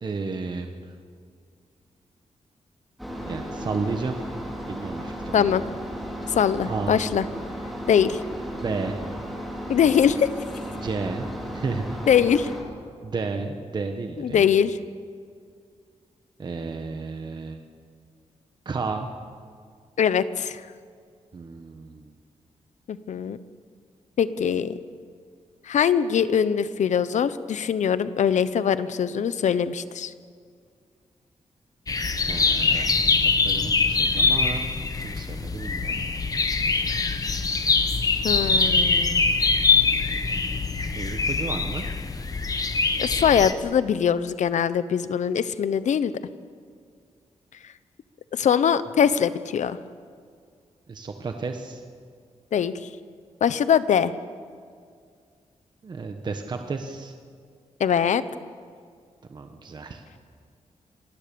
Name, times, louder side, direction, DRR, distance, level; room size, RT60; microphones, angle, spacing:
voice 1, 0.0-1.0 3.3-4.2 4.7-5.5 6.6-7.0 8.6-9.0 10.7-12.0 13.0-14.5 16.4-17.6 18.6-19.1 21.3-22.1 32.2-34.6 35.0-36.0 40.9-41.9 50.9-51.8 55.8-57.1 59.3-60.0, right 4 dB, 35° right, 5 dB, 1.2 m, -32 dB
sound 1, 3.0-12.6, equal, ahead, 4.6 m, -35 dB
voice 2, 5.3-5.6 6.3-7.2 7.9-8.2 9.7-10.3 12.1-12.5 14.2-14.8 20.0-20.6 22.9-23.4 24.2-24.8 25.7-30.1 38.2-39.4 43.0-46.1 48.3-49.8 52.5-52.7 53.4-54.1 57.8-58.2, left 8 dB, 90° left, 14 dB, 0.9 m, -22 dB
sound 2, 31.9-43.5, left 4 dB, 30° left, 1.1 m, -23 dB
26.5 x 19.5 x 7.0 m, 2.2 s
wide cardioid pair, 180°, 12 cm